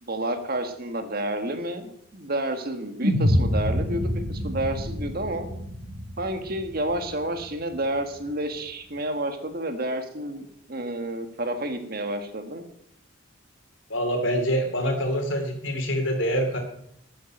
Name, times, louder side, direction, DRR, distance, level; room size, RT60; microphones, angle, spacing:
voice 1, 0.0-5.5 6.2-12.6, right 1 dB, 45° right, 7 dB, 1.6 m, -30 dB
sound 1, 3.0-7.4, equal, 70° right, 5.0 m, -27 dB
voice 2, 13.9-16.6, equal, 65° left, 5 dB, 3.2 m, -25 dB
12.5 x 9.1 x 6.6 m, 0.75 s
head